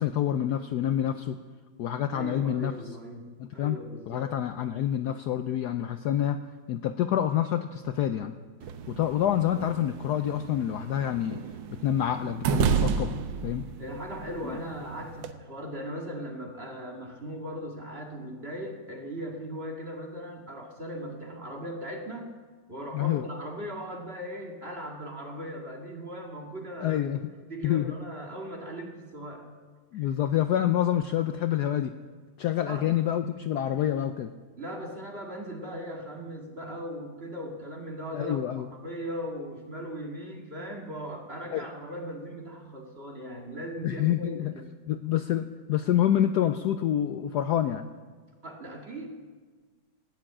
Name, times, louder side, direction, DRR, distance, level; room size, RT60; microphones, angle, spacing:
voice 1, 0.0-1.4 1.8-2.7 3.4-3.8 4.1-6.4 6.7-8.4 8.9-11.4 11.7-13.1 13.4-13.7 14.4-14.6 22.9-23.2 26.8-27.3 27.6-27.9 29.9-31.9 32.4-34.3 38.1-38.7 41.5-41.7 43.8-44.5 44.9-47.9, left 11 dB, 70° left, 9 dB, 1.0 m, -27 dB
voice 2, 2.1-4.3 13.8-22.3 22.7-27.0 27.4-29.5 29.9-30.1 32.7-32.9 34.6-44.7 48.4-49.1, equal, 30° right, 1 dB, 2.1 m, -38 dB
sound 1, 8.6-15.3, right 7 dB, 70° right, 1.5 m, -32 dB
16.0 x 10.0 x 8.6 m, 1.5 s
omnidirectional pair, 2.2 m